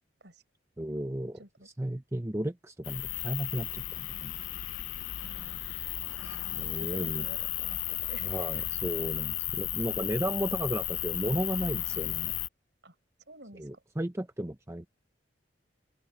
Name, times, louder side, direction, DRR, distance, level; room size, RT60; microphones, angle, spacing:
voice 1, 0.8-1.4 1.8-4.3 6.2-7.2 8.2-12.3 13.6-14.9, right 1 dB, 15° right, 0.7 m, -34 dB
voice 2, 1.3-1.7 5.2-5.6 6.2-8.6 12.8-13.0 13.3-13.8, right 1 dB, 65° right, 7.8 m, -50 dB
sound 1, 2.8-12.5, left 14 dB, 85° left, 0.6 m, -34 dB
open air
head